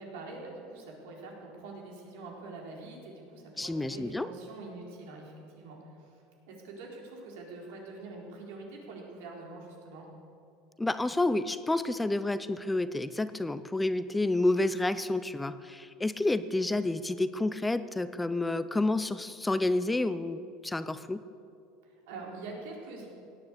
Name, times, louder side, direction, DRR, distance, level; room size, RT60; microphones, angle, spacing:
voice 1, 0.0-6.1 6.5-10.1 21.8-23.1, right 3 dB, 80° right, -1 dB, 4.2 m, -45 dB
voice 2, 3.6-4.3 10.8-21.2, left 2 dB, 5° left, 13 dB, 0.4 m, -29 dB
17.0 x 9.8 x 8.5 m, 2.6 s
supercardioid pair, 145°, 0 cm